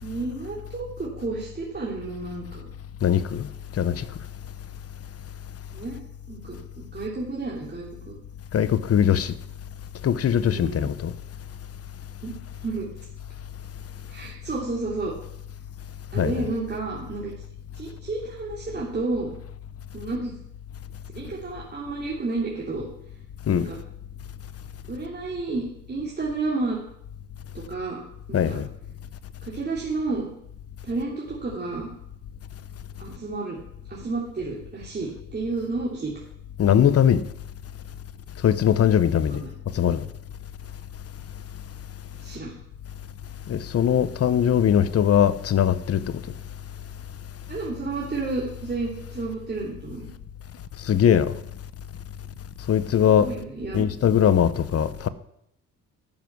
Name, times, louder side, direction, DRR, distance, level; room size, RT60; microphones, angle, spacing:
voice 1, 0.0-2.7 5.7-6.0 6.3-8.2 10.5-10.9 12.2-12.3 12.6-12.9 14.1-15.1 16.1-17.3 17.7-19.3 19.9-20.3 21.1-22.9 23.5-23.8 24.9-25.6 25.9-26.8 27.5-28.0 28.3-28.6 29.4-30.3 30.8-31.9 33.0-33.6 33.9-36.1 39.3-39.5 42.2-42.5 47.5-50.1 53.1-53.8, right 3 dB, 35° right, 3.2 m, -31 dB
voice 2, 3.0-3.5 3.8-4.1 8.5-9.3 10.0-11.1 16.1-16.4 23.5-23.7 28.3-28.7 36.6-37.3 38.4-39.4 39.7-40.0 43.5-46.0 50.9-51.3 52.7-53.3 53.7-55.1, left 9 dB, 50° left, 0.9 m, -20 dB
14.5 x 7.3 x 6.2 m
cardioid pair, 90°, 30 cm